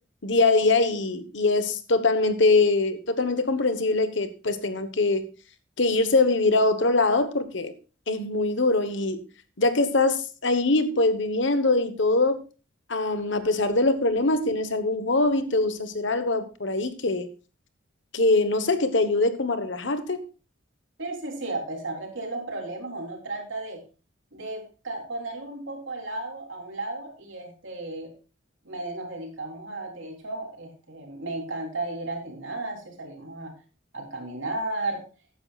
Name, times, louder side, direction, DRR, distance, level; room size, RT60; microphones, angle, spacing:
voice 1, 0.2-5.3 5.8-7.7 8.1-9.2 9.6-12.4 12.9-17.3 18.1-20.2, left 2 dB, 65° left, 10 dB, 1.2 m, -23 dB
voice 2, 21.0-23.8 24.3-28.1 28.6-33.5 33.9-35.0, right 2 dB, 75° right, 1 dB, 3.5 m, -34 dB
14.5 x 9.8 x 2.4 m, 0.34 s
head